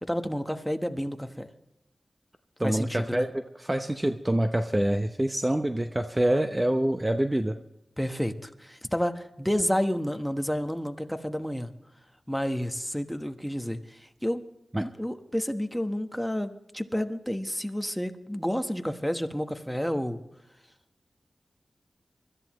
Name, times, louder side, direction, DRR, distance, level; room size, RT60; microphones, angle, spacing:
voice 1, 0.0-1.5 2.6-3.3 8.0-11.7 12.3-14.4 14.8-20.2, equal, 5° left, 7 dB, 1.2 m, -30 dB
voice 2, 2.6-7.6 14.7-14.8, right 1 dB, 20° right, 7 dB, 0.7 m, -26 dB
24.0 x 13.5 x 3.1 m, 0.86 s
wide cardioid pair, 65°, 0 cm